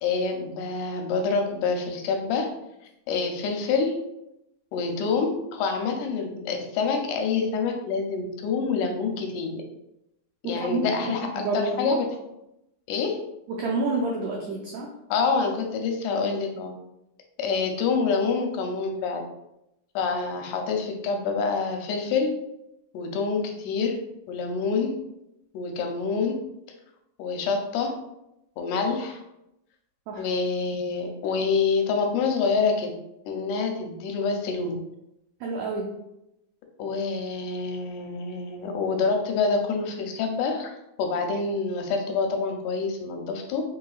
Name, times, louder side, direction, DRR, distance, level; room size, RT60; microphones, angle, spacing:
voice 1, 0.0-2.5 3.1-4.0 4.7-9.6 10.4-12.1 12.9-13.2 15.1-16.7 17.4-19.2 20.0-22.3 22.9-24.0 24.3-24.9 25.5-26.4 27.2-27.9 28.6-29.2 30.2-33.0 33.3-34.8 36.8-40.7 41.0-43.6, left 4 dB, 90° left, 3 dB, 2.2 m, -26 dB
voice 2, 10.4-12.0 13.6-14.9 30.1-30.2 35.4-35.9, right 2 dB, 85° right, -2 dB, 1.4 m, -29 dB
5.8 x 2.9 x 2.3 m, 0.86 s
omnidirectional pair, 3.5 m